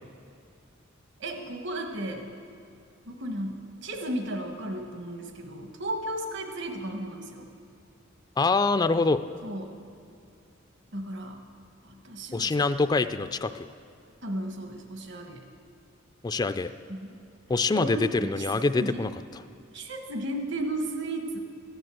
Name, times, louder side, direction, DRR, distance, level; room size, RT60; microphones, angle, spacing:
voice 1, 1.2-2.3 3.1-7.5 9.4-9.8 10.9-11.4 11.8-12.6 14.2-15.4 16.9-17.1 17.7-18.4 18.8-19.1 19.7-21.4, right 1 dB, 65° right, 4 dB, 1.3 m, -34 dB
voice 2, 8.4-9.2 12.3-13.5 16.2-16.7 17.5-19.4, left 3 dB, 20° left, 11 dB, 0.3 m, -25 dB
15.0 x 10.5 x 7.6 m, 2.5 s
head